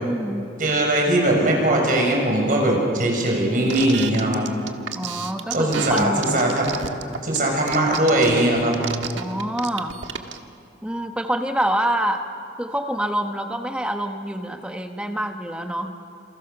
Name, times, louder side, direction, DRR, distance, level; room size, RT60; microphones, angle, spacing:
voice 1, 0.0-0.4 4.9-6.3 9.2-9.9 10.8-12.3 12.6-16.0, right 1 dB, 5° right, 4 dB, 1.1 m, -26 dB
voice 2, 0.6-4.5 5.5-6.7 7.2-8.7, right 1 dB, 45° right, 0 dB, 6.4 m, -20 dB
sound 1, 3.7-10.4, right 7 dB, 85° right, 1.4 m, -31 dB
28.0 x 28.0 x 6.9 m, 2.7 s
head